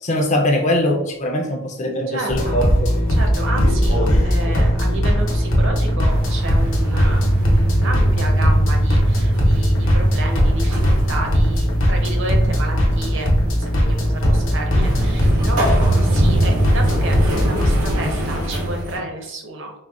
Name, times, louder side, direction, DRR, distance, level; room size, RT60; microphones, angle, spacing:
voice 1, 0.0-2.9, left 1 dB, 30° left, 2 dB, 0.4 m, -21 dB
voice 2, 2.1-2.6 3.1-19.7, right 2 dB, 55° right, 2 dB, 0.6 m, -31 dB
sound 1, 2.3-18.0, equal, 60° left, 0.8 m, -19 dB
sound 2, 6.1-19.0, right 1 dB, 90° right, 0.8 m, -23 dB
4.0 x 2.1 x 2.3 m, 0.82 s
head